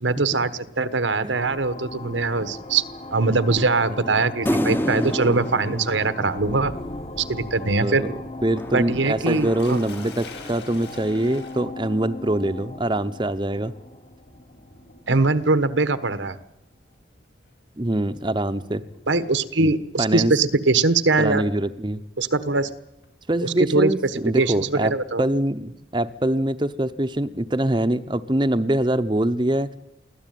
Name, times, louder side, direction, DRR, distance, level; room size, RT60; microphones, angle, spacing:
voice 1, 0.0-2.8 3.1-6.7 7.3-8.0 8.7-9.8 15.1-16.4 19.1-21.4 22.2-22.7 23.4-23.9 24.3-25.2, right 3 dB, 90° right, 13 dB, 1.3 m, -22 dB
sound 1, 1.3-15.5, left 2 dB, 30° left, 1.3 m, -39 dB
sound 2, 4.5-7.1 8.6-10.7, left 1 dB, 10° left, 0.8 m, -29 dB
voice 2, 7.8-8.1 8.4-13.7 17.8-18.8 20.0-20.3 21.2-22.0 23.3-24.9 25.2-29.8, right 1 dB, 25° right, 9 dB, 0.8 m, -24 dB
Sink (filling or washing), 9.6-19.5 20.6-21.0 21.5-21.6 23.0-24.5, left 4 dB, 65° left, 5.2 m, -48 dB
24.0 x 16.0 x 9.3 m, 0.89 s
head